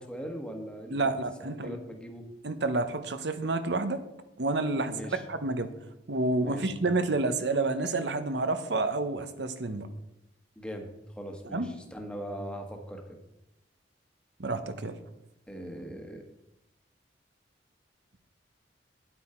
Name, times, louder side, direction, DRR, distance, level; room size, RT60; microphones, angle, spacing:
voice 1, 0.0-1.1 1.4-2.2 4.8-5.2 6.4-6.7 10.6-13.0 15.5-16.2, equal, 5° left, 3 dB, 1.3 m, -40 dB
voice 2, 0.9-1.8 2.4-4.0 4.4-5.0 5.3-5.7 6.1-9.9 11.5-11.7 14.4-15.0, right 2 dB, 65° right, 10 dB, 0.9 m, -29 dB
9.7 x 8.7 x 4.4 m, 0.91 s
head